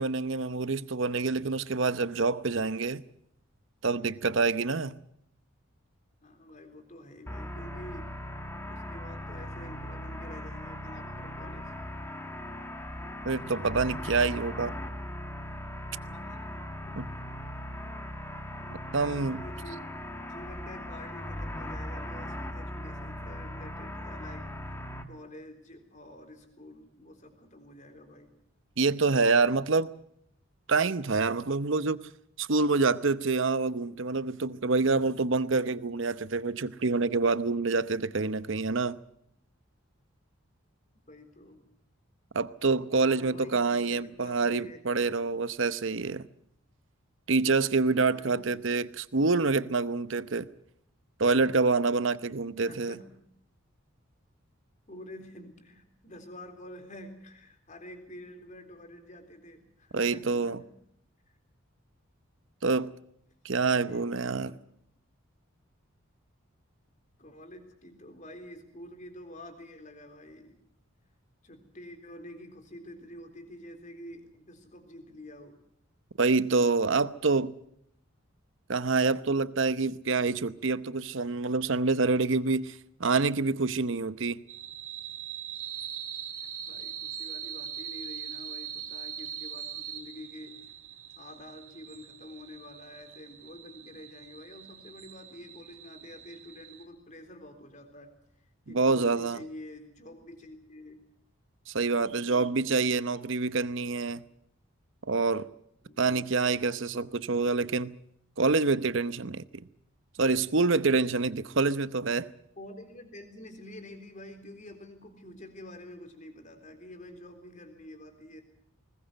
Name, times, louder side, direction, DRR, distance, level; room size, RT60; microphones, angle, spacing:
voice 1, 0.0-3.0 3.8-4.9 13.2-14.7 17.0-17.1 18.9-19.4 28.8-29.9 30.7-32.0 32.4-39.0 42.3-46.2 47.3-50.5 51.2-53.0 59.9-60.6 62.6-62.9 63.4-64.5 76.2-77.5 78.7-84.4 98.7-99.4 101.7-104.2 105.1-105.5 106.0-107.9 108.4-109.4 110.2-112.3, right 4 dB, 60° right, 0.8 m, -27 dB
voice 2, 3.9-4.5 6.2-8.1 8.7-11.7 16.0-16.6 16.9-17.0 19.1-24.7 25.1-28.3 41.1-41.6 43.0-44.8 47.7-48.6 52.7-53.2 54.9-60.7 63.7-64.6 67.2-70.6 71.4-75.6 86.6-90.5 91.2-98.1 98.7-101.0 102.0-102.6 105.8-106.3 112.6-118.4, left 1 dB, 35° left, 3.8 m, -48 dB
sound 1, 7.3-25.0, left 1 dB, 10° left, 1.7 m, -39 dB
sound 2, 84.5-96.8, right 9 dB, 85° right, 3.6 m, -42 dB
20.5 x 20.0 x 7.9 m
head